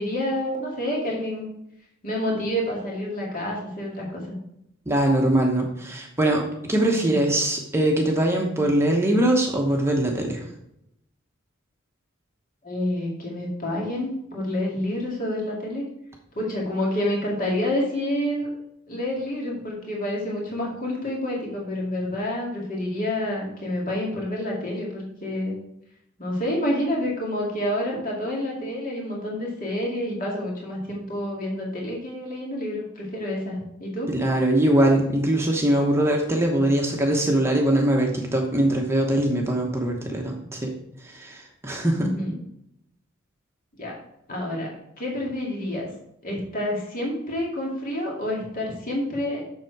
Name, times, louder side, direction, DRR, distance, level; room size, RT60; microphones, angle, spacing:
voice 1, 0.0-1.5 2.0-4.3 7.0-7.2 12.6-15.8 16.4-18.5 18.9-25.6 26.2-34.1 42.0-42.3 43.8-44.0 44.3-45.9 46.2-49.4, left 1 dB, 45° left, -3 dB, 2.2 m, -28 dB
voice 2, 4.9-10.4 34.1-40.7 41.0-42.1, right 1 dB, 15° right, 0 dB, 1.0 m, -22 dB
7.3 x 6.4 x 4.6 m, 0.78 s
head